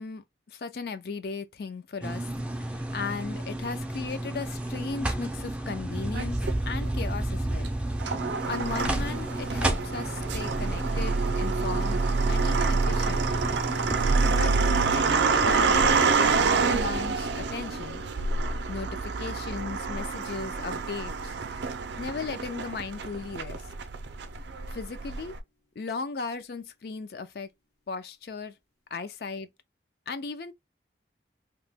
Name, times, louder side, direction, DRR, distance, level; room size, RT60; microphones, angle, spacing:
voice 1, 0.0-2.3 2.5-7.7 8.1-12.0 12.3-13.3 13.6-13.9 14.2-14.5 14.9-16.3 16.7-18.0 18.7-21.4 22.0-23.7 24.7-25.3 25.8-27.5 27.9-28.5 28.9-29.5 30.1-30.5, left 4 dB, 60° left, 0.4 m, -36 dB
sound 1, 2.0-14.4, right 1 dB, 5° right, 0.3 m, -32 dB
sound 2, 6.1-6.9 7.6-25.4, right 4 dB, 80° right, 0.4 m, -27 dB
sound 3, 15.4-23.4, left 2 dB, 85° left, 1.4 m, -44 dB
2.9 x 2.1 x 3.3 m
head